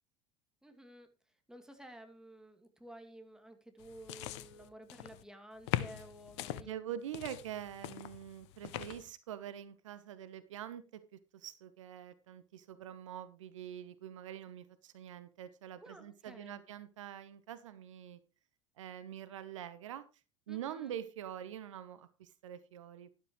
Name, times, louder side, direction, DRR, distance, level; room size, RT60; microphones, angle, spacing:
voice 1, 0.6-1.1 1.5-7.0 15.8-16.6 20.5-20.9, right 1 dB, 5° right, 5 dB, 2.3 m, -53 dB
sound 1, 3.8-5.2 5.7-6.6 7.1-9.1, left 14 dB, 60° left, 0.8 m, -41 dB
voice 2, 6.6-10.8 11.1-18.2 18.8-20.0 20.5-23.1, right 10 dB, 70° right, 14 dB, 1.0 m, -45 dB
12.0 x 12.0 x 3.1 m, 0.30 s
figure-of-eight pair, 70°, 17 cm